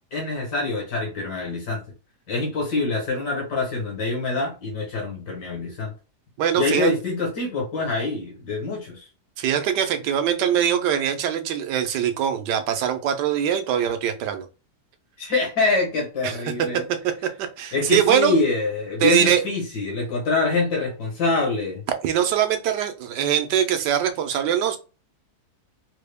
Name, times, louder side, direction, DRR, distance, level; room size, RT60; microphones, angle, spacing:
voice 1, 0.1-1.8 2.3-5.9 6.6-9.1 15.2-16.8 17.7-21.8, left 3 dB, 80° left, 1.9 m, -25 dB
voice 2, 6.4-7.0 9.4-14.4 16.2-16.4 16.7-16.9 17.2-18.4 19.0-19.4 22.0-24.8, right 9 dB, 85° right, 1.3 m, -22 dB
3.9 x 2.2 x 3.4 m
omnidirectional pair, 1.8 m